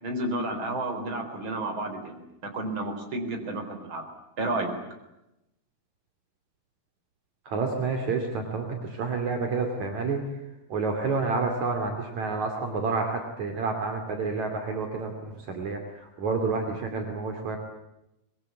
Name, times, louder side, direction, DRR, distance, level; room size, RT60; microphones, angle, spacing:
voice 1, 0.0-4.0 4.4-4.7, right 2 dB, 35° right, 5 dB, 4.8 m, -31 dB
voice 2, 7.5-10.2 10.7-17.6, right 4 dB, 60° right, 4 dB, 3.9 m, -29 dB
25.0 x 22.0 x 9.5 m, 0.90 s
omnidirectional pair, 3.7 m